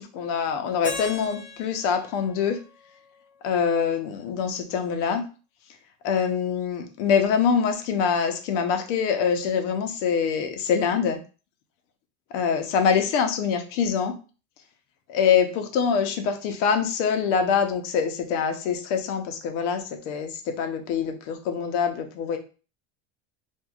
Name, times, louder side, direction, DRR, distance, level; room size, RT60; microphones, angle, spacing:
voice 1, 0.0-2.6 3.4-5.2 6.0-11.2 12.3-14.1 15.1-22.4, left 6 dB, 75° left, 5 dB, 0.9 m, -24 dB
Keyboard (musical), 0.8-3.8, left 3 dB, 20° left, 0.7 m, -40 dB
4.6 x 2.5 x 2.4 m, 0.34 s
supercardioid pair, 125°, 37 cm